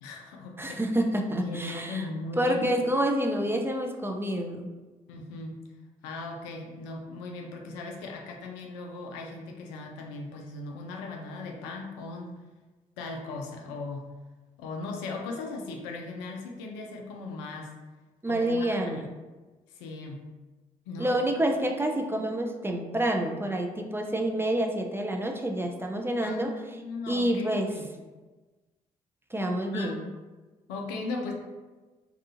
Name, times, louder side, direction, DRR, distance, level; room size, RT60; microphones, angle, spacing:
voice 1, 0.0-0.8 1.4-2.7 5.1-5.5 6.0-12.4 13.0-14.1 14.6-17.7 18.3-19.1 19.7-20.3 20.9-21.1 26.2-26.5 26.8-27.9 29.7-30.1 30.7-31.3, left 3 dB, 75° left, 1 dB, 0.4 m, -38 dB
voice 2, 0.6-2.0 2.4-4.7 18.2-19.0 21.0-26.5 27.1-27.7 29.3-30.0, right 1 dB, 10° right, 2 dB, 0.4 m, -28 dB
2.7 x 2.3 x 2.5 m, 1.2 s
figure-of-eight pair, 40°, 19 cm